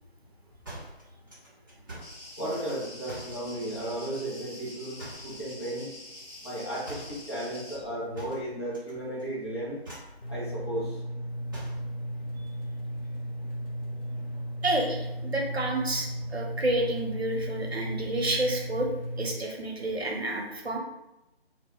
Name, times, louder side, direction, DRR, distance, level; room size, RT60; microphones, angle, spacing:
sound 1, 0.6-2.2 3.0-3.4 5.0-5.4 6.8-7.2 8.1-8.9 9.2-9.5 9.8-10.2 11.5-11.9, right 1 dB, 20° right, 0.7 m, -44 dB
sound 2, 2.0-7.8, left 1 dB, ahead, 1.0 m, -46 dB
voice 1, 2.4-5.9 6.4-9.8 10.3-11.0, right 1 dB, 25° left, -7 dB, 0.6 m, -34 dB
sound 3, 10.2-19.4, equal, 60° left, 0.8 m, -35 dB
voice 2, 14.6-18.9 19.2-20.8, right 1 dB, 75° right, 0 dB, 0.8 m, -29 dB
2.2 x 2.2 x 3.6 m, 0.91 s
figure-of-eight pair, 155°, 32 cm